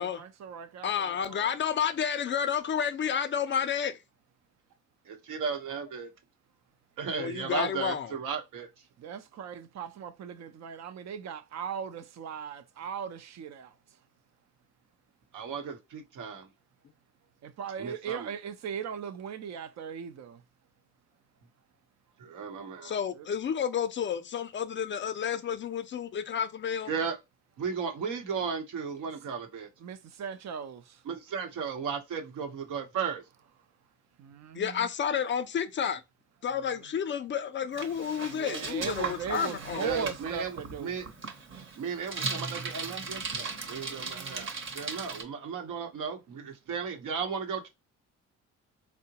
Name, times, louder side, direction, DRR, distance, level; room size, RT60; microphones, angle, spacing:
voice 1, 0.0-1.5 9.0-14.1 17.4-20.4 23.1-23.3 29.8-31.0 33.6-33.9 34.2-34.9 36.5-36.9 38.2-41.0 43.5-44.5, right 7 dB, 65° right, 0.5 m, -39 dB
voice 2, 0.8-4.0 7.1-8.1 22.8-26.9 34.5-36.0 36.4-39.9, left 8 dB, 40° left, 0.4 m, -31 dB
voice 3, 5.3-6.1 7.0-8.7 15.3-16.5 17.8-18.3 22.2-23.0 26.9-27.2 27.6-29.7 31.1-33.2 39.8-40.5 40.8-41.0 41.8-47.7, right 6 dB, 80° right, 0.9 m, -35 dB
Bicycle, 37.7-45.2, right 4 dB, 40° right, 0.8 m, -38 dB
3.7 x 2.1 x 2.8 m
cardioid pair, 90°, 30 cm